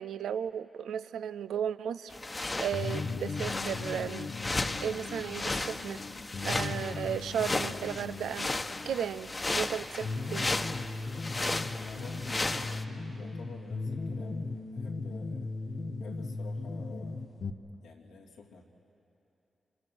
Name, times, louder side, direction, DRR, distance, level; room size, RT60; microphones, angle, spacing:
voice 1, 0.0-2.2 2.6-4.3 4.8-6.0 6.4-8.5 8.9-10.5, right 8 dB, 85° right, 15 dB, 0.4 m, -35 dB
sound 1, 2.1-12.8, left 2 dB, 35° left, 1.2 m, -35 dB
sound 2, 2.7-17.5, left 3 dB, 65° left, 1.0 m, -38 dB
voice 2, 11.7-15.5 16.0-17.3 17.8-18.6, left 4 dB, 90° left, -1 dB, 2.8 m, -50 dB
26.0 x 25.5 x 6.2 m, 3.0 s
supercardioid pair, 45°, 0 cm